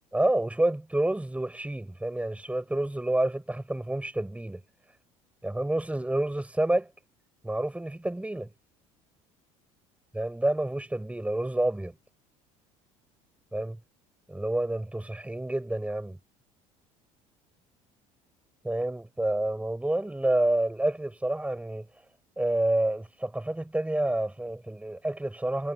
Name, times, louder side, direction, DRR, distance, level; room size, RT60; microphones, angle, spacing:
voice 1, 0.1-4.6 5.4-6.9 7.4-8.5 10.2-11.9 13.5-13.8 14.3-16.2 18.6-21.8 22.4-25.7, right 1 dB, 5° right, 5.6 m, -28 dB
hypercardioid pair, 65°, 18 cm